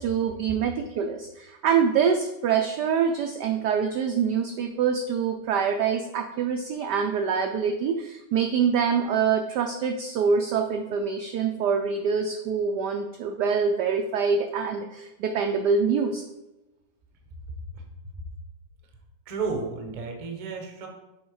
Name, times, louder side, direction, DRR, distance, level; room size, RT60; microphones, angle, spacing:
voice 1, 0.0-16.2, right 6 dB, 90° right, 4 dB, 0.9 m, -25 dB
voice 2, 19.3-20.9, right 4 dB, 55° right, 2 dB, 0.4 m, -32 dB
7.2 x 3.9 x 4.8 m, 1.0 s
omnidirectional pair, 2.4 m